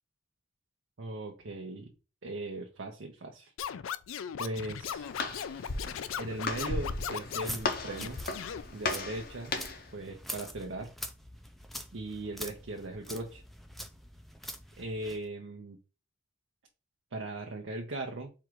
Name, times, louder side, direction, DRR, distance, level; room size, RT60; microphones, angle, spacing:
voice 1, 1.0-1.9 2.2-3.5 4.4-5.1 6.2-8.2 8.7-9.6 9.9-10.9 11.9-13.4 14.8-15.8 17.1-18.3, right 2 dB, 75° right, 2 dB, 0.7 m, -38 dB
Scratching (performance technique), 3.6-7.6 8.0-8.6, left 8 dB, 85° left, 0.4 m, -37 dB
Walk footsteps, 4.5-9.9, left 3 dB, 45° left, 0.6 m, -36 dB
sound 1, 7.2-15.2, equal, ahead, 0.3 m, -45 dB
4.6 x 2.5 x 4.5 m, 0.32 s
head